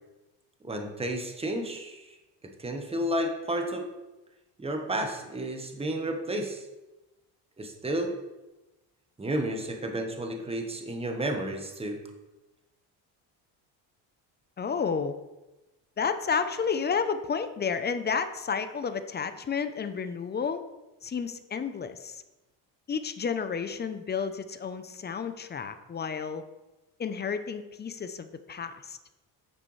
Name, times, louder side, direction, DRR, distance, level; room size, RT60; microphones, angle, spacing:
voice 1, 0.6-2.2 2.4-3.9 4.6-6.6 7.6-8.2 9.2-12.0, right 1 dB, 15° right, 4 dB, 1.2 m, -32 dB
voice 2, 14.6-15.2 16.0-20.6 21.0-22.2 22.9-26.4 27.0-29.0, left 6 dB, 25° left, 10 dB, 0.6 m, -31 dB
9.9 x 6.7 x 3.2 m, 1.0 s
cardioid pair, 115°, 44 cm